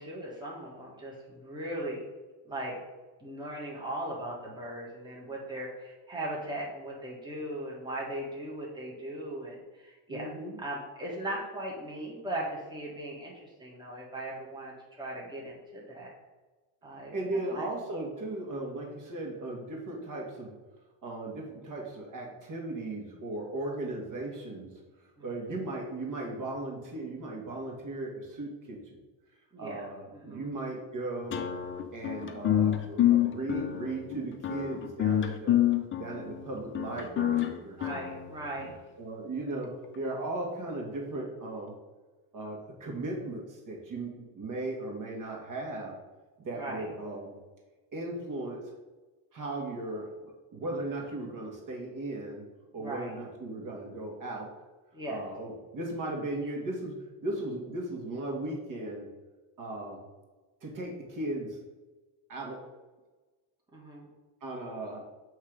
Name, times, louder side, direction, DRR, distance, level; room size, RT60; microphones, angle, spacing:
voice 1, 0.0-2.0 2.4-2.8 3.2-10.3 10.6-16.1 16.8-17.7 25.2-25.3 29.5-29.8 30.1-30.5 37.8-38.7 39.2-39.3 46.5-46.9 52.8-53.1 54.9-55.2 63.7-64.1, right 1 dB, 10° right, -3 dB, 1.6 m, -38 dB
voice 2, 10.1-10.6 17.1-20.5 21.0-24.7 25.2-29.0 29.6-31.5 31.9-35.7 36.0-38.0 39.0-41.7 42.3-45.9 46.4-47.3 47.9-48.6 49.3-52.4 52.7-54.5 55.1-56.9 57.2-59.1 59.6-60.0 60.6-61.6 62.3-62.6 64.4-65.0, right 2 dB, 40° right, 0 dB, 1.7 m, -37 dB
sound 1, 31.3-38.7, left 11 dB, 25° left, 0.6 m, -28 dB
7.9 x 3.2 x 5.1 m, 1.2 s
cardioid pair, 125°, 47 cm